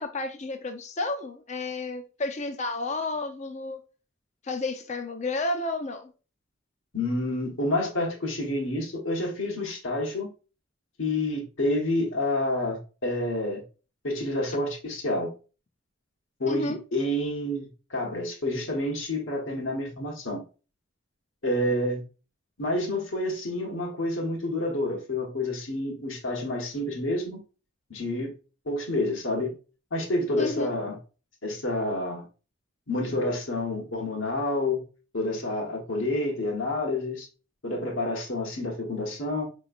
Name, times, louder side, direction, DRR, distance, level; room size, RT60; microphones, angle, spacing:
voice 1, 0.0-3.8 4.4-6.1 16.5-16.8 30.4-30.7, left 2 dB, 35° left, 0.5 m, -31 dB
voice 2, 6.9-10.3 11.0-13.6 14.0-15.3 16.4-20.4 21.4-22.0 22.6-27.4 27.9-28.3 28.6-29.6 29.9-31.0 31.4-32.2 32.9-34.8 35.1-37.3 37.6-39.5, left 1 dB, 80° left, 1.2 m, -28 dB
4.9 x 3.1 x 2.4 m
head